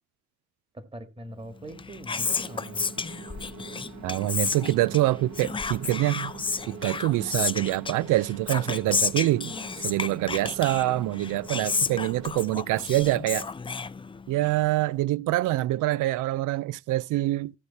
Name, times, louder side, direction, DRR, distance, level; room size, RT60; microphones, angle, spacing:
voice 1, 0.7-2.8, right 1 dB, 20° right, 2.0 m, -42 dB
Whispering, 1.6-14.5, left 4 dB, 15° left, 0.5 m, -32 dB
sound 1, 2.2-12.4, right 7 dB, 70° right, 3.2 m, -46 dB
voice 2, 4.0-6.3 6.7-9.6 9.8-13.4 14.3-17.5, right 16 dB, 90° right, 0.6 m, -25 dB
15.0 x 6.7 x 4.2 m
cardioid pair, 90°, 30 cm